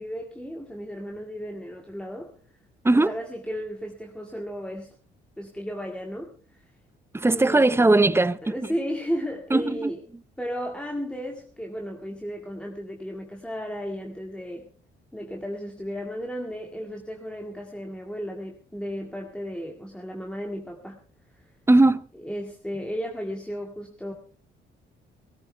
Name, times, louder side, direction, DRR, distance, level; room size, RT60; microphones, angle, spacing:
voice 1, 0.0-2.3 2.9-4.9 5.4-6.6 7.3-7.7 8.4-10.0 10.4-14.7 15.1-21.0 21.3-21.5 22.2-24.1, equal, 5° left, 2.0 m, -34 dB
voice 2, 7.1-8.5 9.5-9.9 21.7-22.0, right 2 dB, 10° right, 0.7 m, -19 dB
18.0 x 17.5 x 3.4 m
cardioid pair, 90°, 20 cm